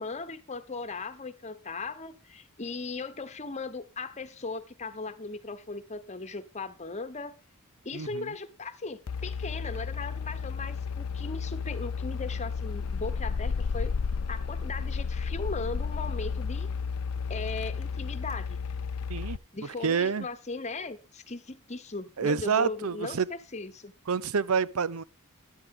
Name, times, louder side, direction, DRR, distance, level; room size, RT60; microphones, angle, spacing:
voice 1, 0.0-7.4 7.8-13.9 14.3-16.7 17.3-18.6 19.5-23.9, left 3 dB, 30° left, 1.1 m, -38 dB
voice 2, 7.9-8.3 19.1-19.4 19.8-20.3 22.2-23.3 24.1-25.0, right 5 dB, 75° right, 0.6 m, -28 dB
sound 1, 9.1-19.4, left 5 dB, 75° left, 0.5 m, -32 dB
14.0 x 10.5 x 3.8 m
head